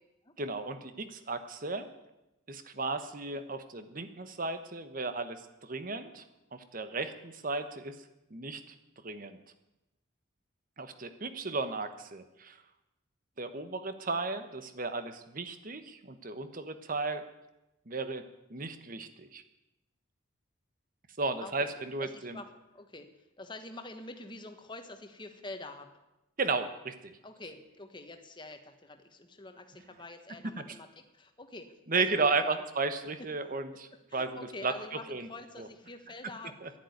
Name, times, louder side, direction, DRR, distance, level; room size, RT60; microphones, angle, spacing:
voice 1, 0.4-1.9 2.5-6.2 6.5-8.0 8.3-8.6 9.0-9.4 10.8-12.6 13.4-17.2 17.9-18.2 18.5-19.4 21.2-22.4 26.4-27.2 31.9-34.3 34.6-34.7 35.1-35.3 35.6-35.7 36.6-36.7, right 3 dB, 45° right, 10 dB, 1.2 m, -34 dB
voice 2, 22.0-22.5 22.7-23.1 23.4-25.9 27.2-32.5 34.1-36.6, left 2 dB, 25° left, 6 dB, 1.4 m, -46 dB
11.0 x 10.5 x 9.7 m, 0.96 s
head